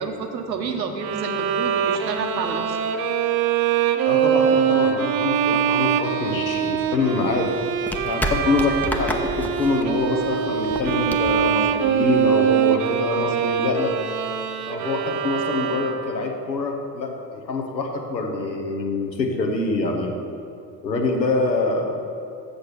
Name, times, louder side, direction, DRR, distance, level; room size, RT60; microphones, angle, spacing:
voice 1, 0.0-2.8, right 4 dB, 80° right, 5 dB, 0.9 m, -29 dB
Bowed string instrument, 1.0-16.3, right 8 dB, 45° right, 0.7 m, -23 dB
voice 2, 4.1-7.6 8.0-13.9 14.6-20.1 20.8-22.0, left 3 dB, 85° left, 2 dB, 1.0 m, -25 dB
sound 1, 6.4-12.3, equal, 5° left, 0.5 m, -32 dB
6.9 x 6.4 x 6.0 m, 2.5 s
figure-of-eight pair, 60°, 50 cm